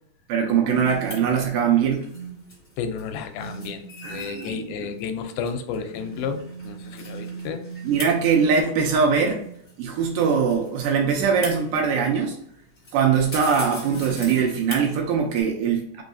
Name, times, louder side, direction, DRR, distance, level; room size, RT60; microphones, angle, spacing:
voice 1, 0.3-2.0 4.0-4.9 7.8-9.4 9.8-12.4 12.9-16.0, right 6 dB, 80° right, 1 dB, 2.0 m, -22 dB
sound 1, 0.7-15.4, right 2 dB, 55° left, 0.7 m, -39 dB
voice 2, 2.8-7.6, left 6 dB, 85° left, 7 dB, 2.4 m, -32 dB
5.4 x 3.1 x 2.6 m, 0.69 s
omnidirectional pair, 4.2 m